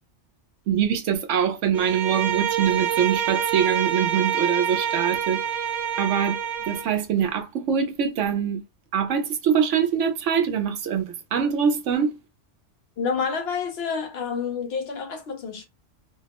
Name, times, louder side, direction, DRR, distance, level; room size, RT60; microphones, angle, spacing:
voice 1, 0.7-5.6 6.0-6.4 6.7-8.6 8.9-12.2, right 8 dB, 85° right, 1.0 m, -24 dB
Bowed string instrument, 1.7-6.9, right 8 dB, 55° right, 0.6 m, -26 dB
voice 2, 13.0-15.7, left 5 dB, 65° left, 0.9 m, -28 dB
2.8 x 2.0 x 2.9 m
omnidirectional pair, 1.2 m